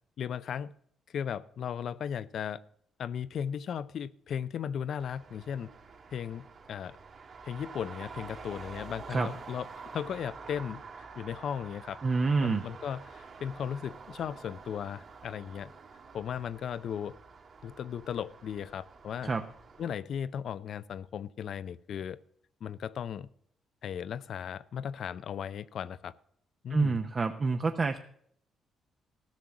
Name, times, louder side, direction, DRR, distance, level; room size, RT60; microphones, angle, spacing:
voice 1, 0.2-0.7 1.1-2.6 3.0-5.7 6.1-7.0 7.4-9.7 9.9-12.0 12.4-15.7 16.1-17.2 17.6-19.3 19.8-22.2 22.6-23.3 23.8-26.1 26.6-27.0, left 8 dB, 65° left, 0.5 m, -36 dB
Traffic noise roadway noise, 5.0-19.9, right 4 dB, 55° right, 2.1 m, -48 dB
voice 2, 12.0-12.6 19.2-19.4 26.7-28.0, right 4 dB, 35° right, 0.7 m, -27 dB
14.5 x 6.3 x 7.0 m
cardioid pair, 90°, 0 cm